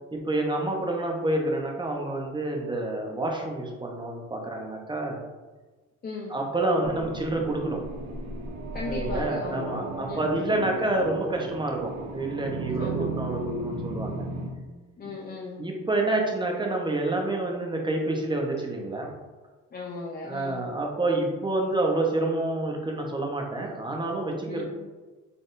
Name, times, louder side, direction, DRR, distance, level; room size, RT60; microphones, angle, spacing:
voice 1, 0.1-5.2 6.3-7.8 8.8-14.2 15.6-19.1 20.2-24.7, right 2 dB, 15° right, 1 dB, 0.7 m, -28 dB
voice 2, 6.0-6.3 8.7-9.8 10.1-10.5 12.8-13.2 15.0-15.6 19.7-20.6 24.5-24.7, left 3 dB, 30° left, -2 dB, 0.5 m, -36 dB
sound 1, 6.8-14.5, right 2 dB, 60° right, 0.7 m, -35 dB
4.1 x 3.5 x 2.5 m, 1.3 s
cardioid pair, 90°, 30 cm